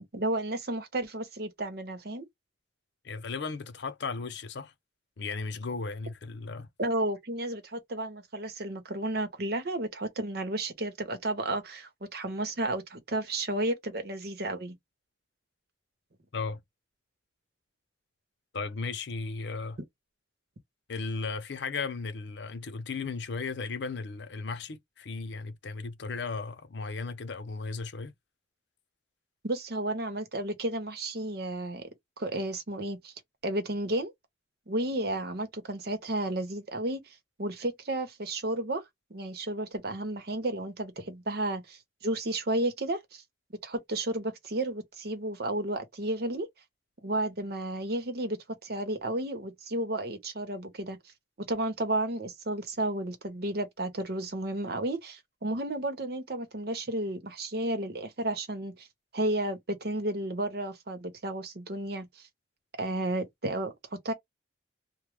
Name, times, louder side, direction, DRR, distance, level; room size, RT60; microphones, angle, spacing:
voice 1, 0.0-2.3 6.8-14.8 29.4-31.9 32.2-33.1 33.4-34.1 34.7-37.0 37.4-38.8 39.1-43.2 43.6-46.5 47.0-51.0 51.4-58.9 59.1-62.2 62.8-64.1, right 1 dB, 55° right, 0.9 m, -32 dB
voice 2, 3.0-4.7 5.2-6.7 16.3-16.6 18.5-19.8 20.9-28.1, left 4 dB, 65° left, 0.6 m, -35 dB
3.0 x 2.2 x 3.3 m
head